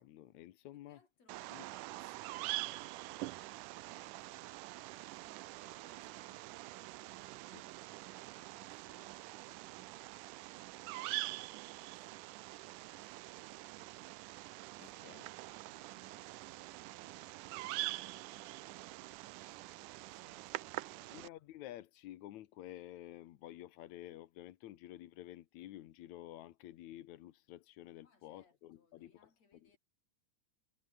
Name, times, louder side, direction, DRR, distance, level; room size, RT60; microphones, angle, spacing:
voice 1, 0.0-1.0 1.5-1.6 7.5-7.6 14.8-15.3 21.1-29.3 29.6-29.8, left 14 dB, 70° left, 2.2 m, -51 dB
voice 2, 0.7-14.3 14.9-15.2 15.4-21.2 28.0-29.8, left 4 dB, 55° left, 6.2 m, -72 dB
Bird vocalization bird call bird song, 1.3-21.3, right 19 dB, 80° right, 2.2 m, -45 dB
omnidirectional pair, 3.7 m